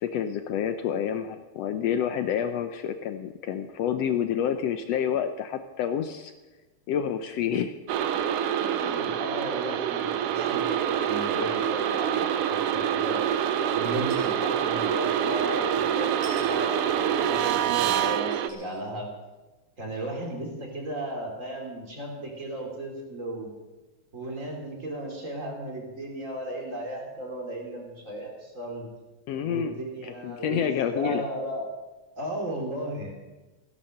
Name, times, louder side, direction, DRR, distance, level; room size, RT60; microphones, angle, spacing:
voice 1, 0.0-6.3 6.9-7.7 29.3-29.8 30.0-31.2, left 8 dB, 75° left, 8 dB, 1.6 m, -28 dB
sound 1, 7.9-18.5, right 9 dB, 75° right, 1.4 m, -26 dB
voice 2, 8.6-13.2 13.7-19.1 19.8-23.5 24.1-28.9 29.4-31.6 32.1-33.1, right 1 dB, 25° right, 1 dB, 3.1 m, -35 dB
sound 2, 13.8-14.3 16.2-16.5 17.4-17.5 18.3-18.8 19.3-19.4, right 1 dB, 50° right, 4.5 m, -46 dB
15.5 x 10.5 x 6.6 m, 1.2 s
omnidirectional pair, 3.4 m